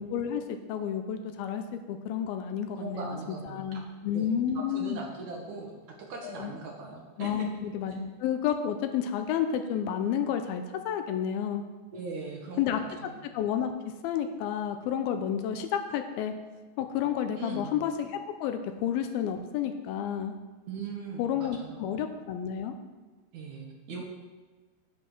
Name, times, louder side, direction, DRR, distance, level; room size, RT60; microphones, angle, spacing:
voice 1, 0.0-5.0 6.2-6.5 7.2-11.6 12.6-13.7 14.0-16.3 16.8-20.4 21.2-22.7, left 9 dB, 85° left, 7 dB, 2.2 m, -31 dB
voice 2, 2.8-3.6 4.1-4.3 4.7-5.7 6.1-7.5 11.9-12.6 13.0-13.3 17.4-17.7 20.7-21.9 23.3-24.0, right 3 dB, 60° right, -1 dB, 2.1 m, -39 dB
9.2 x 7.6 x 6.0 m, 1.4 s
omnidirectional pair, 5.0 m